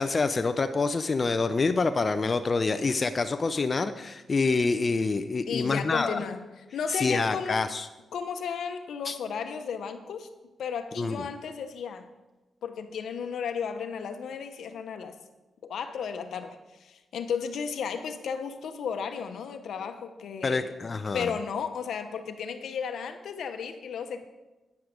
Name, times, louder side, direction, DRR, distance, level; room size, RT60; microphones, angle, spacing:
voice 1, 0.0-6.2 6.9-7.9 9.1-9.2 11.0-11.2 20.4-21.3, left 4 dB, 45° left, 9 dB, 0.6 m, -26 dB
voice 2, 5.5-7.6 8.1-10.3 10.6-12.1 12.6-15.2 15.6-20.6 21.1-24.3, left 6 dB, 80° left, 8 dB, 1.0 m, -34 dB
10.5 x 9.7 x 5.1 m, 1.1 s
cardioid pair, 60°, 0 cm